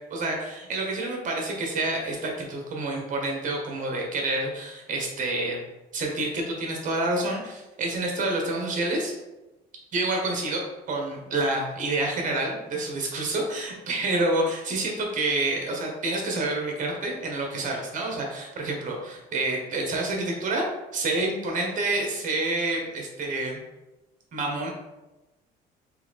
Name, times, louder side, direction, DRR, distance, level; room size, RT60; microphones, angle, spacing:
voice 1, 0.1-5.6 5.9-9.1 9.9-20.6 20.9-23.6 24.3-24.7, right 2 dB, 50° right, 0 dB, 1.2 m, -28 dB
3.5 x 3.2 x 3.5 m, 1.0 s
cardioid pair, 110°, 17 cm